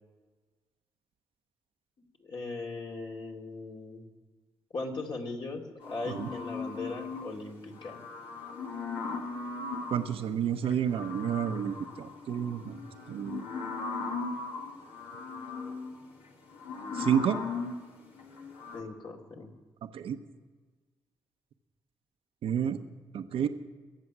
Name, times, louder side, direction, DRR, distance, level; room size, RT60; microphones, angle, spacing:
voice 1, 2.2-4.1 4.7-8.0 18.7-19.5, left 3 dB, 55° left, 1 dB, 2.5 m, -39 dB
sound 1, 5.8-7.4 7.7-10.2 10.6-18.8, left 4 dB, 80° left, 1.7 m, -38 dB
voice 2, 9.9-12.8 13.1-13.4 16.9-17.4 19.9-20.2 22.4-22.8 23.1-23.5, right 8 dB, 75° right, 8 dB, 0.8 m, -30 dB
22.0 x 7.7 x 6.1 m, 1.4 s
supercardioid pair, 50°, 10 cm